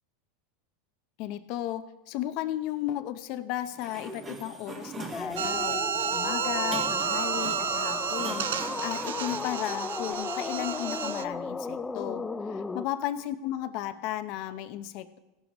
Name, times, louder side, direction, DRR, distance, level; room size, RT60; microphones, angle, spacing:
voice 1, 1.2-5.8 6.1-15.2, left 13 dB, 55° left, 11 dB, 0.7 m, -34 dB
Sliding door, 3.6-10.1, right 3 dB, 25° right, 1.6 m, -43 dB
sound 1, 5.1-12.9, left 4 dB, 15° left, 0.5 m, -35 dB
sound 2, 5.4-11.2, right 9 dB, 85° right, 0.4 m, -31 dB
16.0 x 12.0 x 3.0 m, 1.1 s
supercardioid pair, 125°, 0 cm